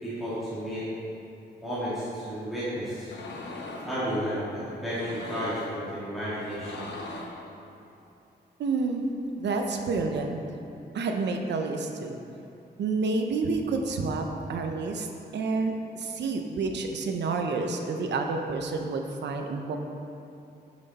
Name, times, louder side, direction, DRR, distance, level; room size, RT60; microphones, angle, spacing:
voice 1, 0.0-0.9 1.6-3.1 3.8-6.8, equal, ahead, -13 dB, 2.2 m, -32 dB
sound 1, 3.0-4.0 4.8-5.7 6.4-7.4, left 2 dB, 85° left, 1.1 m, -40 dB
voice 2, 8.6-9.1 9.4-10.4 10.9-12.2 12.8-15.1 15.3-19.8, right 3 dB, 80° right, 4 dB, 0.9 m, -29 dB
10.5 x 6.3 x 4.2 m, 2.7 s
wide cardioid pair, 175°, 18 cm